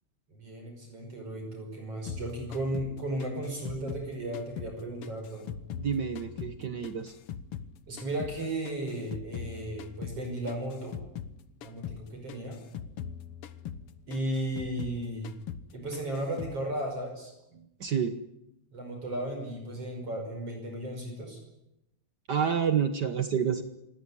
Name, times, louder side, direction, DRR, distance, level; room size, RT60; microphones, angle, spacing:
voice 1, 0.3-5.5 7.9-11.0 11.6-12.6 14.1-15.4 15.7-17.3 18.7-21.4, right 1 dB, 45° right, 3 dB, 6.5 m, -35 dB
sound 1, 2.1-4.8 5.0-7.7 8.0-11.4 11.6-12.0 12.3-15.0 15.2-15.7 15.9-16.6, left 8 dB, 60° left, 1.6 m, -41 dB
voice 2, 5.8-7.1 17.5-18.1 22.3-23.6, right 7 dB, 70° right, 10 dB, 1.0 m, -29 dB
27.0 x 17.5 x 9.9 m, 0.86 s
omnidirectional pair, 3.6 m